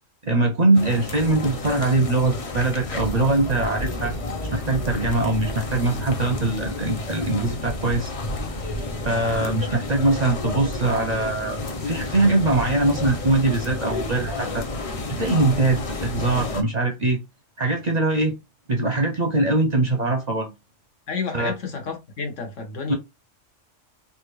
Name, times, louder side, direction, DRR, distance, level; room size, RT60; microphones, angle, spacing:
voice 1, 0.2-4.1 4.5-8.1 9.0-14.6 15.2-17.2 17.6-18.3 18.7-20.5 21.3-21.5 22.9-23.0, right 2 dB, 45° right, 0.6 m, -22 dB
sound 1, 0.7-16.6, left 2 dB, 40° left, 0.5 m, -31 dB
voice 2, 21.1-23.0, left 5 dB, 75° left, 1.4 m, -30 dB
3.4 x 2.4 x 3.1 m
omnidirectional pair, 1.3 m